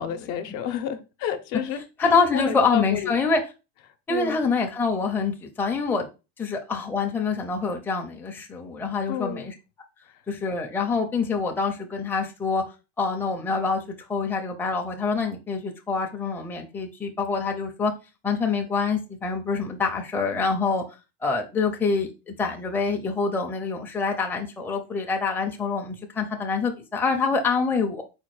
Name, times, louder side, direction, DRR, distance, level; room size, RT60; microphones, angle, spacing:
voice 1, 0.0-3.1 4.1-4.4 9.1-9.5, left 9 dB, 70° left, 0.7 m, -30 dB
voice 2, 2.0-3.4 4.1-6.1 6.4-9.5 10.3-12.6 13.0-13.8 14.1-17.9 18.2-20.8 21.2-28.0, left 4 dB, 5° left, 0.5 m, -26 dB
4.3 x 2.3 x 4.6 m
cardioid pair, 150°, 33 cm